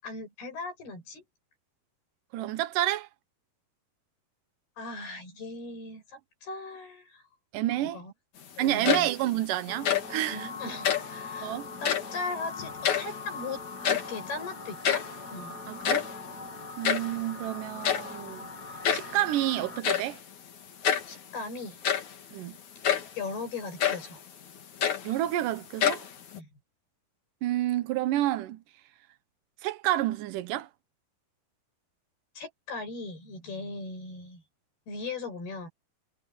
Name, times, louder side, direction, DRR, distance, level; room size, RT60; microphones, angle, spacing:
voice 1, 0.0-1.2 4.8-7.2 7.8-8.1 8.6-9.1 10.3-13.6 13.9-15.0 15.3-15.6 21.1-21.8 23.2-24.2 26.4-26.5 32.4-34.4 34.9-35.7, left 3 dB, 80° left, 9.1 m, -38 dB
voice 2, 2.3-3.1 7.5-8.0 8.6-10.5 11.4-11.7 15.7-16.1 16.8-18.5 18.9-20.2 22.3-22.6 25.0-26.0 27.4-28.6 29.6-30.7, right 14 dB, 70° right, 2.3 m, -29 dB
sound 1, 8.6-9.3 9.7-10.2 10.8-11.2 11.7-12.2 12.6-13.4 13.7-14.3 14.6-14.7 14.8-15.2 15.7-17.2 17.8-18.2 18.8-19.2 19.8-20.2 20.8-21.1 21.7-22.2 22.8-23.2 23.8-24.1 24.6-25.4 25.8-26.4, left 9 dB, 55° left, 3.3 m, -28 dB
sound 2, 9.7-19.8, left 3 dB, 25° left, 3.5 m, -41 dB
omnidirectional pair, 4.4 m